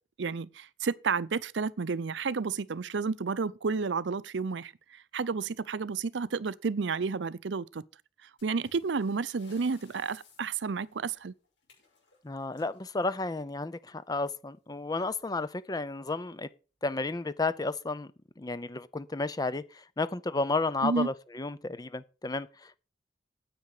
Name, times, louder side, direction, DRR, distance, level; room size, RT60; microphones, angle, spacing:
voice 1, 0.2-7.8 8.4-11.3 20.8-21.1, right 5 dB, 75° right, 0.6 m, -31 dB
sound 1, 8.4-13.8 15.0-15.2 15.5-15.6 16.2-16.3 17.0-17.3, left 4 dB, 80° left, 6.1 m, -61 dB
voice 2, 12.2-16.5 16.8-18.1 18.4-22.8, left 3 dB, 20° left, 0.5 m, -32 dB
9.7 x 8.4 x 6.5 m
head